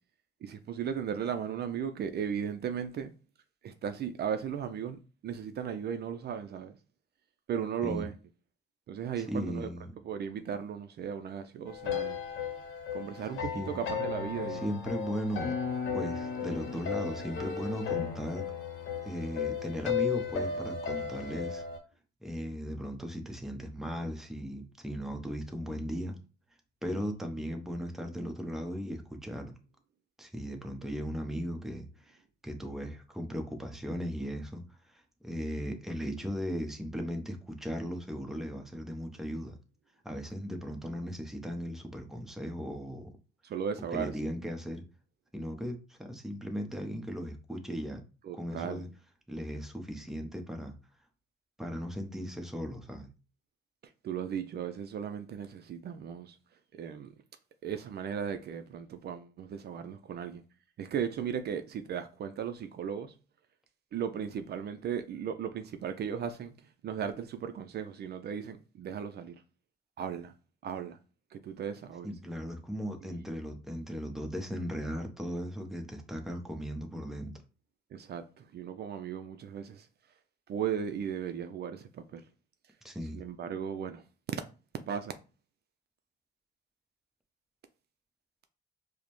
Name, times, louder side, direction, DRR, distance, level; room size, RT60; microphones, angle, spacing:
voice 1, 0.4-3.1 3.6-6.8 7.5-8.1 8.9-9.7 10.0-12.2 12.9-14.6 43.4-44.2 48.2-48.9 54.0-56.4 56.7-57.1 57.6-60.4 60.8-63.1 63.9-69.4 70.0-70.3 70.6-71.0 71.3-72.1 77.9-79.9 80.5-82.2 83.1-84.0 84.9-85.1, right 8 dB, 55° right, 0.4 m, -36 dB
voice 2, 9.3-9.9 13.5-13.7 14.5-15.6 15.9-18.4 19.0-21.6 22.2-26.2 26.8-29.5 30.2-32.2 32.4-34.6 34.9-39.5 40.0-43.1 43.9-44.8 45.3-48.0 48.3-48.9 49.3-50.8 51.6-53.1 72.0-77.3 82.8-83.2, equal, ahead, 0.8 m, -37 dB
sound 1, 11.7-21.8, left 7 dB, 75° left, 0.9 m, -35 dB
4.9 x 2.1 x 3.0 m
cardioid pair, 90°, 20 cm